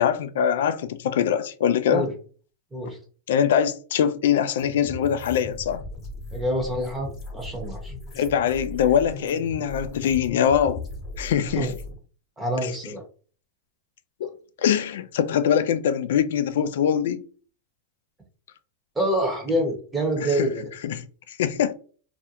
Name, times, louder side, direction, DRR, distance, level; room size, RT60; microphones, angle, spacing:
voice 1, 0.0-2.1 3.3-5.8 8.1-10.8 11.2-11.7 12.6-12.7 14.2-14.3 14.6-17.2 20.2-20.5 20.8-21.7, left 8 dB, 75° left, 0.3 m, -23 dB
sound 1, 4.6-11.9, left 2 dB, 30° left, 0.9 m, -38 dB
voice 2, 6.3-7.9 11.6-11.7 12.4-13.0 14.2-14.3 18.9-20.7, right 1 dB, 10° right, 0.8 m, -26 dB
2.4 x 2.1 x 2.7 m
hypercardioid pair, 130°, 0 cm